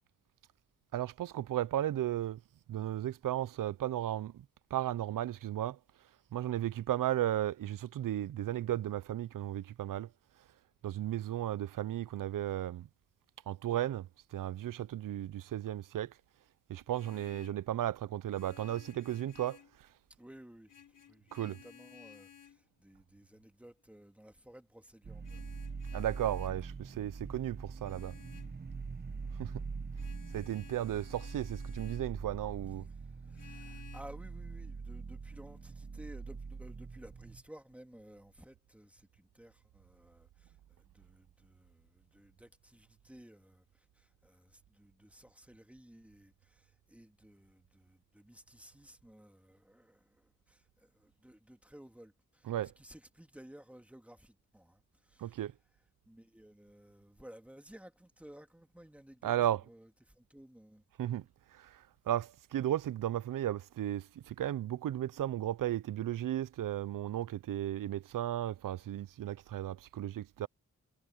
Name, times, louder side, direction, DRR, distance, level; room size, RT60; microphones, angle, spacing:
voice 1, 0.9-2.4 2.7-4.4 4.7-5.8 6.3-10.1 10.8-12.9 13.5-16.1 16.7-19.6 21.3-21.6 25.9-28.1 29.4-29.5 30.3-32.9 52.4-52.7 55.2-55.5 59.2-59.7 61.0-61.2 61.5-70.5, right 12 dB, 90° right, 0.6 m, -35 dB
Vehicle horn car horn honking, 16.7-17.7 18.3-19.8 20.7-22.6 25.2-26.6 27.8-28.6 30.0-32.1 33.4-34.0, left 8 dB, 80° left, 3.5 m, -56 dB
voice 2, 20.2-20.7 21.1-25.4 32.8-55.4 56.1-60.8, right 1 dB, 5° right, 2.2 m, -56 dB
sound 1, 25.0-37.4, right 4 dB, 30° right, 1.2 m, -43 dB
wide cardioid pair, 145°, 31 cm